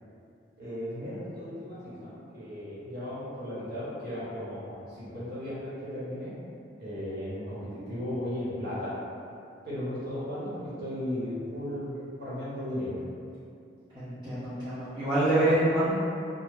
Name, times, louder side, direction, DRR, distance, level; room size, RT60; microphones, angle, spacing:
voice 1, 0.6-6.3 6.8-8.9 9.6-13.0, left 1 dB, 60° right, -11 dB, 1.0 m, -36 dB
voice 2, 13.9-15.9, right 1 dB, 25° right, -18 dB, 0.9 m, -26 dB
3.0 x 2.1 x 3.4 m, 2.5 s
head